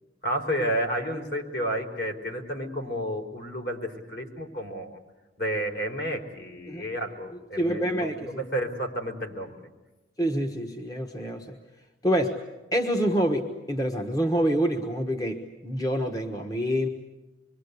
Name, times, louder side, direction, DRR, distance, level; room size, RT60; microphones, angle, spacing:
voice 1, 0.2-5.0 5.4-9.6, equal, 55° left, 2 dB, 4.5 m, -31 dB
voice 2, 7.6-8.4 10.2-11.6 12.0-12.4 12.7-16.9, equal, 20° left, 3 dB, 1.3 m, -27 dB
26.0 x 23.5 x 8.3 m, 1.1 s
head